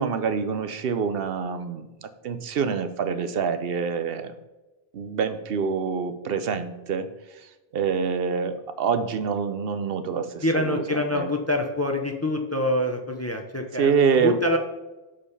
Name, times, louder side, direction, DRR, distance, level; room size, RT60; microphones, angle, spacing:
voice 1, 0.0-4.3 4.9-7.1 7.7-11.3 13.8-14.4, right 6 dB, 70° right, 10 dB, 0.8 m, -26 dB
voice 2, 10.4-14.6, left 1 dB, 20° left, 4 dB, 0.6 m, -26 dB
6.7 x 5.0 x 5.5 m, 1.1 s
omnidirectional pair, 1.0 m